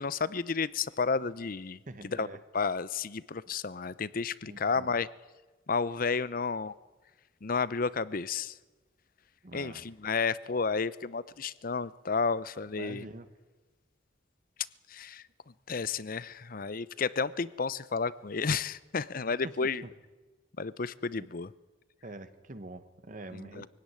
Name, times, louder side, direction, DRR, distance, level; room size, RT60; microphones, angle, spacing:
voice 1, 0.0-2.3 2.5-5.1 5.7-6.7 7.4-8.5 9.5-13.1 14.9-15.2 15.7-19.8 20.6-21.5 23.4-23.7, left 5 dB, 50° left, 0.7 m, -32 dB
voice 2, 1.9-2.4 4.4-4.9 9.4-9.9 12.8-13.3 19.4-19.5 19.8-19.9 21.2-21.3 22.0-23.7, right 2 dB, 45° right, 1.3 m, -45 dB
23.0 x 17.0 x 9.8 m
head